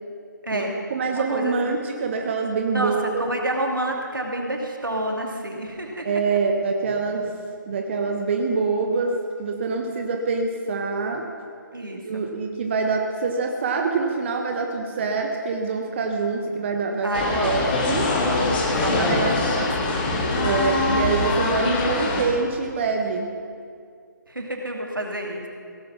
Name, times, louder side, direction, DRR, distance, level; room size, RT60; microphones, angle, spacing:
voice 1, 0.5-3.2 6.0-7.3 7.7-11.3 12.0-17.1 17.4-18.1 18.9-19.4 20.4-23.3, right 4 dB, 35° right, 3 dB, 1.0 m, -25 dB
voice 2, 1.1-1.5 2.7-6.1 8.0-8.1 11.7-12.2 17.0-17.8 18.7-20.3 24.3-25.5, right 1 dB, 85° right, 1 dB, 2.6 m, -29 dB
sound 1, 17.1-22.2, left 2 dB, 25° left, 1.7 m, -23 dB
17.0 x 9.3 x 6.0 m, 2.3 s
figure-of-eight pair, 150°, 11 cm